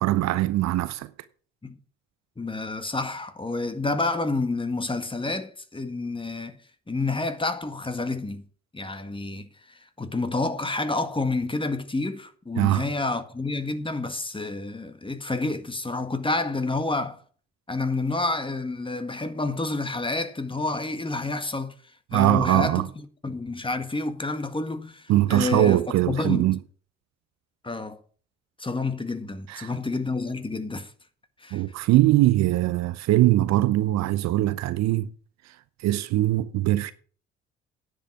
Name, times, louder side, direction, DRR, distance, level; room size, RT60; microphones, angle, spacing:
voice 1, 0.0-1.1 12.6-12.8 22.1-22.9 25.1-26.6 29.5-29.7 31.5-35.1 35.8-36.9, right 15 dB, 55° right, 0.7 m, -21 dB
voice 2, 2.4-6.6 6.9-8.4 8.7-17.2 17.7-21.7 22.1-22.8 23.2-25.8 26.1-26.5 27.6-28.0 28.6-30.9 31.4-31.6, left 3 dB, 15° left, 1.7 m, -29 dB
10.0 x 8.1 x 6.1 m
figure-of-eight pair, 50°, 33 cm